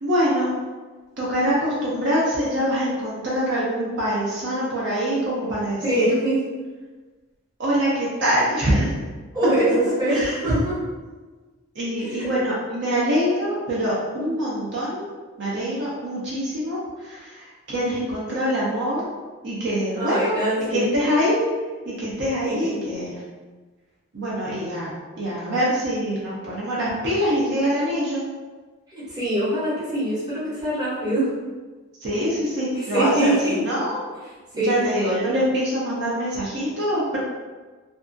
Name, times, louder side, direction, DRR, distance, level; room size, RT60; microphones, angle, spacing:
voice 1, 0.0-0.6 1.2-6.2 7.6-9.0 10.1-10.6 11.7-15.0 15.4-19.0 19.4-20.4 20.7-21.4 21.8-23.2 24.1-24.9 25.2-28.3 32.0-34.0 34.5-37.2, equal, 55° right, -6 dB, 0.6 m, -24 dB
voice 2, 5.8-6.4 9.3-10.8 12.0-12.3 20.0-20.8 22.4-22.8 28.9-31.3 32.7-33.6 34.6-34.9, right 1 dB, 20° right, -10 dB, 0.8 m, -24 dB
2.6 x 2.3 x 2.5 m, 1.3 s
head